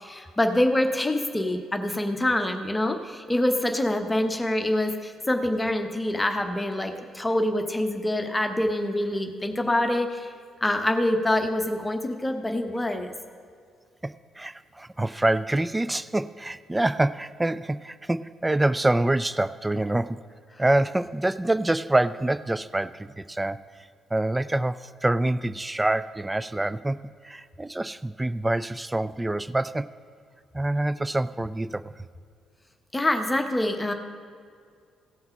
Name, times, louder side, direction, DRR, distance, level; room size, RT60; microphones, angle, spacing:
voice 1, 0.0-10.3 10.6-13.1 32.9-33.9, left 1 dB, 15° left, 5 dB, 0.9 m, -25 dB
voice 2, 14.0-20.2 20.6-23.6 24.1-27.0 27.2-29.9 30.5-32.1, right 1 dB, 15° right, 14 dB, 0.3 m, -26 dB
16.5 x 5.8 x 5.5 m, 2.2 s
figure-of-eight pair, 40°, 0 cm